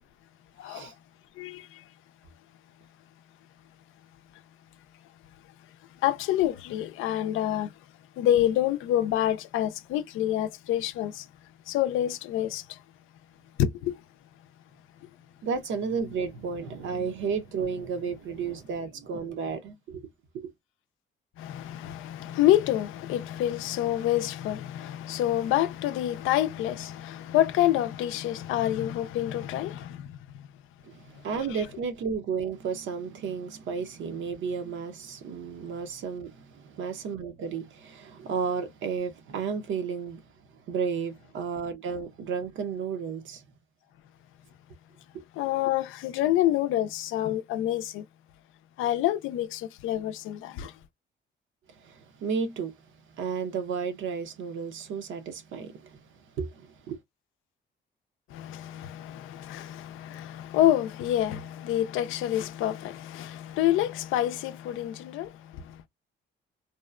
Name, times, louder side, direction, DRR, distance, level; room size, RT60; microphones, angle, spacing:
voice 1, 0.6-0.9 1.4-1.8 6.0-7.7 8.2-11.3 11.7-12.8 13.6-14.0 21.4-30.5 45.3-48.1 48.8-50.8 58.3-65.8, left 12 dB, 90° left, 0.4 m, -27 dB
voice 2, 15.4-20.0 20.3-20.5 30.8-40.2 40.7-43.4 45.1-45.2 51.7-52.8 53.1-56.0 56.4-57.0, right 6 dB, 75° right, 0.7 m, -33 dB
2.8 x 2.1 x 2.3 m
cardioid pair, 90°, 20 cm